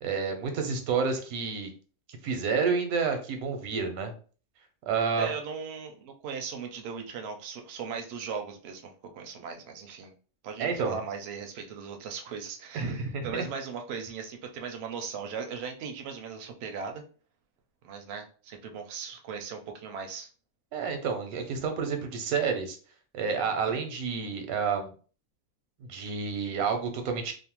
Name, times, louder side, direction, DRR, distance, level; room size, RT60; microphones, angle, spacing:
voice 1, 0.0-1.7 2.1-4.1 4.9-5.3 10.6-11.0 12.7-13.5 20.7-22.8 23.1-24.9 25.8-27.3, right 5 dB, 85° right, 5 dB, 1.1 m, -29 dB
voice 2, 5.2-10.1 10.4-17.0 17.8-20.3 23.7-23.8, right 6 dB, 65° right, 4 dB, 0.6 m, -38 dB
2.7 x 2.1 x 2.8 m, 0.39 s
omnidirectional pair, 1.5 m